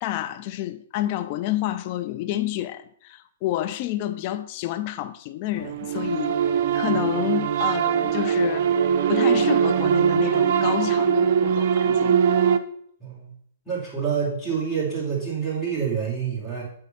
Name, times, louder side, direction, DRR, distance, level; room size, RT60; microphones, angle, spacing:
voice 1, 0.0-6.4 6.7-8.7 9.1-12.2, left 14 dB, 40° left, 0.6 m, -29 dB
sound 1, 5.5-12.6, right 8 dB, 45° right, 0.6 m, -21 dB
voice 2, 13.7-16.6, right 6 dB, ahead, 3.7 m, -27 dB
8.2 x 3.9 x 5.7 m
figure-of-eight pair, 115°, 0 cm